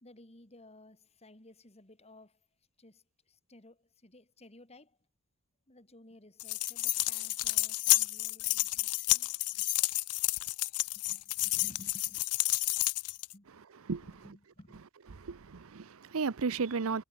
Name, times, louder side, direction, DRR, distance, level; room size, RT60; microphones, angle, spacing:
voice 1, 0.0-2.5 2.8-5.0 5.7-9.7 10.9-12.3 13.3-13.5 14.0-14.8, left 1 dB, 30° left, 2.7 m, -57 dB
sound 1, 6.4-13.3, left 20 dB, 90° left, 0.5 m, -30 dB
voice 2, 15.2-17.0, right 5 dB, 70° right, 0.7 m, -33 dB
head